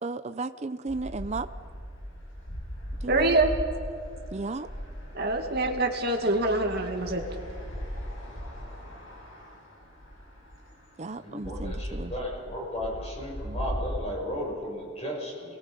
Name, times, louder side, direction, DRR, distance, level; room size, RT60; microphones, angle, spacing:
voice 1, 0.0-1.5 3.0-3.3 4.3-4.7 11.0-12.1, right 3 dB, 30° right, 10 dB, 0.5 m, -34 dB
sound 1, 0.9-14.0, equal, 65° left, 5.7 m, -38 dB
voice 2, 3.1-3.5 5.1-7.2, right 2 dB, 45° right, 2 dB, 2.3 m, -25 dB
voice 3, 11.2-15.6, equal, 30° left, -3 dB, 6.9 m, -35 dB
29.0 x 22.0 x 5.3 m, 2.3 s
head